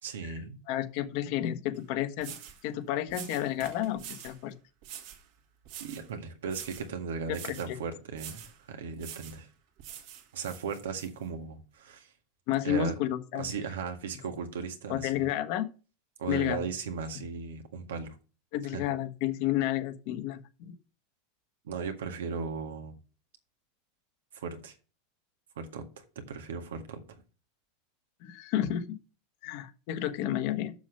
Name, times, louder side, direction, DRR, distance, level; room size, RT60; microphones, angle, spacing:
voice 1, 0.0-0.6 5.8-9.5 10.3-12.1 12.6-12.9 13.3-15.1 16.2-18.2 18.6-18.8 21.6-23.0 24.3-24.7 25.5-27.2, right 5 dB, 90° right, 1.8 m, -37 dB
voice 2, 0.7-2.3 2.6-4.5 7.3-7.8 12.5-13.5 14.9-15.7 16.3-16.7 17.1-17.2 18.5-20.7 28.2-29.0 29.4-30.7, left 12 dB, 60° left, 1.4 m, -31 dB
sound 1, 1.7-1.8 2.2-2.6 3.1-4.4 4.8-5.2 5.6-6.1 6.5-6.9 7.3-7.7 8.1-8.6 9.0-9.4 9.8-11.1, right 10 dB, 65° right, 2.1 m, -45 dB
7.1 x 6.4 x 6.8 m
supercardioid pair, 115°, 0 cm